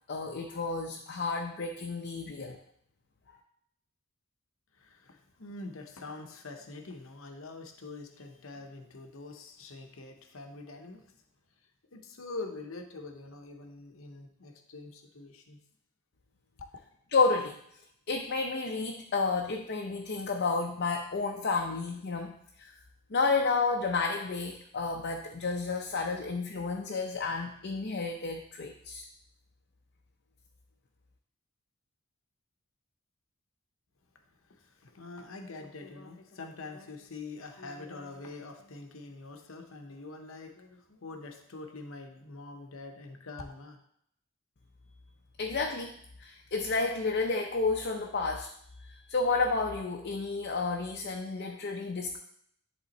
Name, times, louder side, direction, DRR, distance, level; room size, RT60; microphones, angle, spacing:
voice 1, 0.1-2.6 3.3-3.4 17.1-17.6 18.1-22.3 22.6-22.7 23.1-29.1 45.4-45.9 46.2-48.5 48.8-52.2, left 4 dB, 50° left, 2 dB, 0.6 m, -31 dB
voice 2, 4.7-11.1 11.9-15.6 16.6-16.7 34.4-43.8, left 3 dB, 70° left, 5 dB, 0.9 m, -45 dB
10.5 x 3.7 x 4.1 m, 0.69 s
head